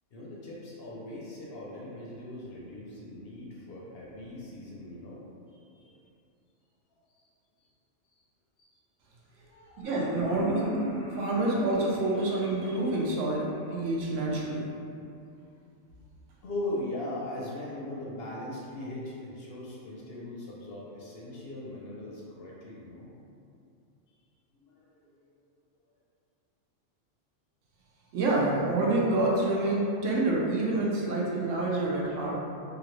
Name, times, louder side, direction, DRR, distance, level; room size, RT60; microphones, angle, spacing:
voice 1, 0.1-5.2 5.6-5.9 8.6-8.8 9.4-9.9 16.4-23.2 24.6-25.2, left 1 dB, 65° left, -5 dB, 0.7 m, -40 dB
sound 1, 9.8-14.5, left 1 dB, 10° left, 0.6 m, -38 dB
voice 2, 9.8-10.7 11.2-14.6 28.1-32.3, right 2 dB, 85° right, -4 dB, 1.0 m, -27 dB
3.1 x 2.4 x 3.0 m, 2.5 s
omnidirectional pair, 1.3 m